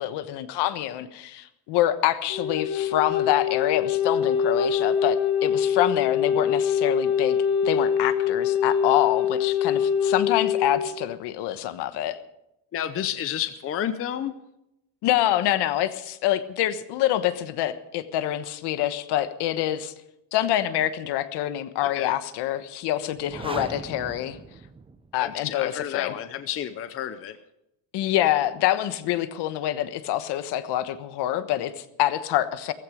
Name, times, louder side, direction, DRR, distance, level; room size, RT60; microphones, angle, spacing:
voice 1, 0.0-7.4 7.6-12.2 15.0-19.9 20.3-24.4 25.1-26.2 27.9-32.7, left 13 dB, 60° left, 11 dB, 1.3 m, -26 dB
Wind instrument woodwind instrument, 2.3-10.9, left 7 dB, 75° left, 3.4 m, -24 dB
voice 2, 12.7-14.3 21.8-22.2 25.2-27.4, left 10 dB, 30° left, 10 dB, 0.7 m, -30 dB
sound 1, 23.1-25.3, right 4 dB, 10° right, 0.7 m, -39 dB
16.0 x 15.0 x 5.1 m, 0.85 s
cardioid pair, 160°, 46 cm